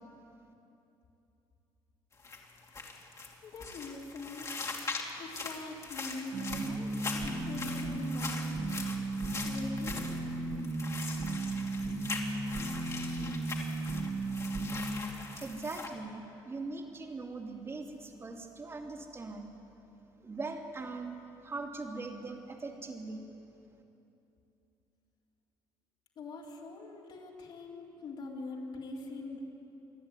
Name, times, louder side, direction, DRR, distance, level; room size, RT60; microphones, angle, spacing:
sound 1, 2.1-15.9, left 3 dB, 35° left, 2.8 m, -41 dB
voice 1, 3.4-4.5 5.2-8.4 9.4-10.0 26.2-29.4, left 2 dB, 60° left, -2 dB, 4.2 m, -43 dB
sound 2, 6.3-15.0, right 2 dB, 50° right, 2.6 m, -35 dB
voice 2, 15.3-19.5 20.2-23.3, right 3 dB, 30° right, 3 dB, 2.6 m, -41 dB
28.0 x 11.0 x 9.8 m, 2.8 s
cardioid pair, 95°, 9 cm